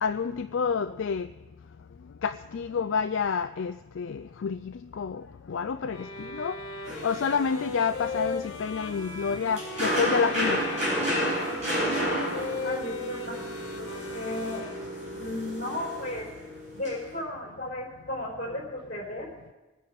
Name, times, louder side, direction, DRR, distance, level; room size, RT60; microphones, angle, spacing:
voice 1, 0.0-1.3 2.2-5.2 5.5-6.5 7.0-10.6, left 6 dB, 65° left, 10 dB, 0.4 m, -29 dB
Violin - G major, 5.9-15.1, left 3 dB, 80° left, 1.7 m, -38 dB
sound 1, 6.8-17.0, equal, 35° right, 6.7 m, -32 dB
voice 2, 12.6-13.5 14.1-14.6 15.1-16.3 16.7-19.3, left 1 dB, 40° left, -2 dB, 4.6 m, -34 dB
21.0 x 9.5 x 5.3 m, 1.1 s
head